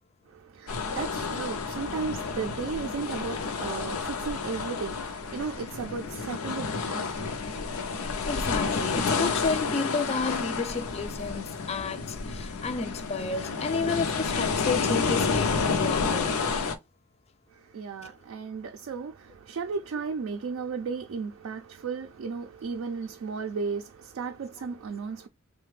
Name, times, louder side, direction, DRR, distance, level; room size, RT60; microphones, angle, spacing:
voice 1, 0.3-7.4 17.5-25.3, right 5 dB, 70° right, 0.4 m, -35 dB
sound 1, 0.7-16.8, left 4 dB, 85° left, 0.5 m, -30 dB
voice 2, 8.3-15.5 15.8-16.3 18.0-18.1, left 4 dB, 30° left, 0.3 m, -31 dB
3.2 x 2.2 x 3.2 m
head